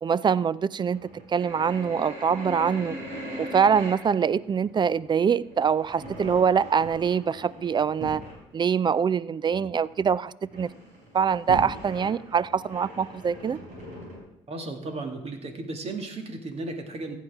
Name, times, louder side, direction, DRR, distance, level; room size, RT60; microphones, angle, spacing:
voice 1, 0.0-1.0 1.3-3.0 3.4-8.2 8.5-10.7 11.1-13.6, right 7 dB, 35° right, 0.5 m, -24 dB
sound 1, 0.7-8.4 8.8-8.9 9.3-9.4 9.6-10.1 10.4-14.2, equal, 70° right, 5.1 m, -40 dB
voice 2, 14.5-17.2, right 2 dB, 50° right, 2.3 m, -35 dB
15.0 x 9.3 x 3.6 m
hypercardioid pair, 55°, 13 cm